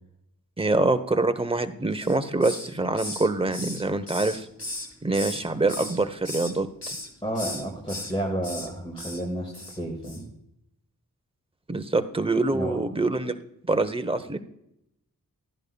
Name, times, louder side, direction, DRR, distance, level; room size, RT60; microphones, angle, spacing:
voice 1, 0.6-4.5 5.0-7.0 11.7-13.4 13.7-14.4, right 2 dB, 15° right, 10 dB, 0.8 m, -25 dB
Hiss, 1.9-2.7 3.0-5.4 5.7-6.5 6.8-7.1 7.3-8.1 8.4-8.7 9.0-9.2 9.5-9.8 10.0-10.2, left 1 dB, 45° left, 2.5 m, -36 dB
voice 2, 7.2-10.3 12.5-12.8, right 1 dB, 15° left, -1 dB, 2.1 m, -31 dB
12.0 x 10.5 x 2.3 m, 0.80 s
cardioid pair, 45°, 35 cm